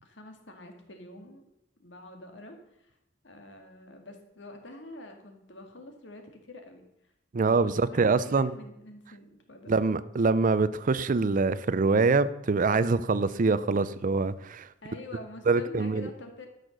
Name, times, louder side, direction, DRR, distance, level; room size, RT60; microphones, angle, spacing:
voice 1, 0.0-1.5 1.8-3.0 3.2-7.1 7.6-9.9 14.8-16.5, left 2 dB, 70° left, 4 dB, 2.1 m, -46 dB
voice 2, 7.3-8.5 9.7-14.7 15.5-16.1, right 4 dB, 45° right, 16 dB, 0.5 m, -24 dB
12.5 x 6.6 x 6.6 m, 0.83 s
head